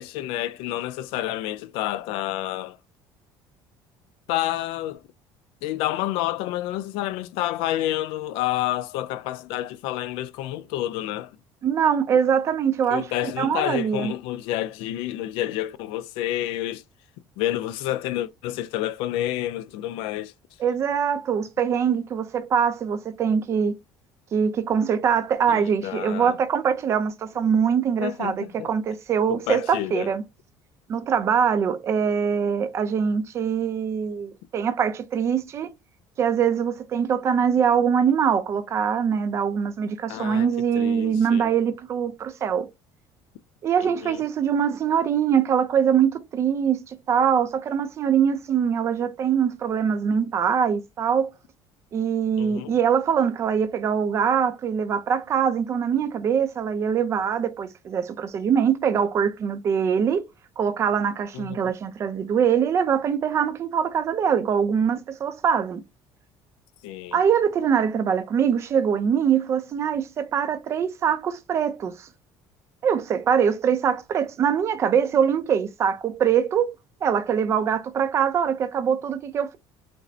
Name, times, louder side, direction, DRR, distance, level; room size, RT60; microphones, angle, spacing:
voice 1, 0.0-2.8 4.3-5.0 5.6-11.4 12.9-16.8 17.4-20.3 25.5-26.4 28.0-28.7 29.3-30.1 40.1-41.5 43.8-44.2 52.4-52.8 61.3-61.6 66.8-67.2, left 14 dB, 80° left, 0.4 m, -29 dB
voice 2, 11.6-13.1 13.4-14.1 20.6-23.8 24.3-30.2 30.9-35.7 36.2-42.7 43.6-51.3 51.9-60.2 60.6-65.8 67.1-72.1 72.8-76.7 77.0-79.6, right 7 dB, 30° right, 0.4 m, -23 dB
5.1 x 2.0 x 2.7 m
cardioid pair, 160°, 9 cm